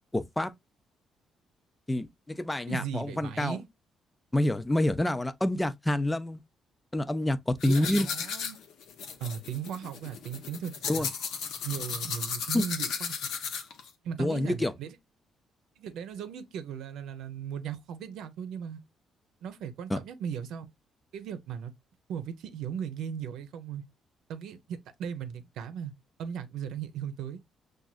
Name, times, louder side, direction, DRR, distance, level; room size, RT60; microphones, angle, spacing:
voice 1, 0.1-0.5 1.9-3.6 4.3-6.4 6.9-8.1 10.9-11.1 12.5-12.6 14.2-14.7 19.9-20.0, left 1 dB, 10° left, 0.5 m, -27 dB
voice 2, 2.7-3.7 7.6-8.6 9.2-11.1 11.6-13.2 14.0-14.9 15.8-18.8 19.4-20.7 21.1-21.7 22.1-23.8 24.3-25.9 26.2-27.4, right 8 dB, 85° right, 0.7 m, -37 dB
sound 1, 7.6-13.9, left 6 dB, 85° left, 0.8 m, -35 dB
6.1 x 2.5 x 2.4 m
cardioid pair, 90°, 0 cm